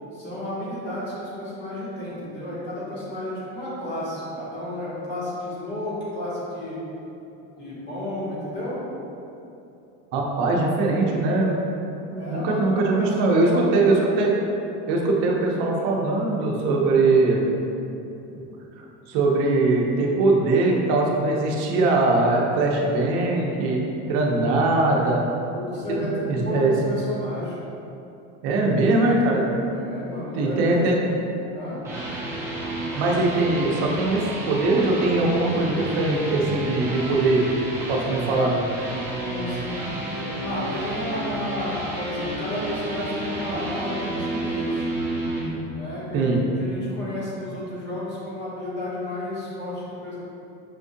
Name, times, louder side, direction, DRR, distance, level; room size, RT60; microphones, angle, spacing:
voice 1, 0.1-6.8 7.6-8.8 12.1-14.1 24.4-25.1 25.5-27.6 29.7-30.9 31.5-31.8 39.2-44.9 45.7-50.2, left 1 dB, 30° left, -8 dB, 1.2 m, -32 dB
voice 2, 10.1-11.6 12.1-14.3 14.9-17.4 18.3-18.4 19.1-23.8 24.1-25.2 25.9-26.7 28.4-29.5 30.3-31.0 33.0-37.4 37.9-38.5 46.1-46.4, right 2 dB, 60° right, -1 dB, 0.7 m, -21 dB
sound 1, 31.6-45.5, right 1 dB, 10° right, 0.8 m, -31 dB
5.9 x 2.5 x 2.7 m, 2.9 s
cardioid pair, 155°, 33 cm